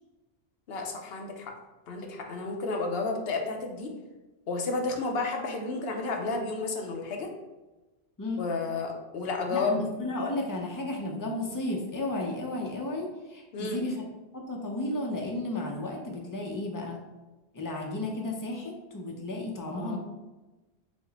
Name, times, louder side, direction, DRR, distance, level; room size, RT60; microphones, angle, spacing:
voice 1, 0.7-1.5 1.9-3.9 4.5-7.3 8.4-9.8 13.5-13.8 19.7-20.0, left 3 dB, 65° left, 2 dB, 0.9 m, -31 dB
voice 2, 9.5-14.1 14.3-17.0 17.5-20.0, left 2 dB, 25° left, 0 dB, 0.5 m, -33 dB
4.9 x 2.1 x 3.9 m, 1.1 s
omnidirectional pair, 1.2 m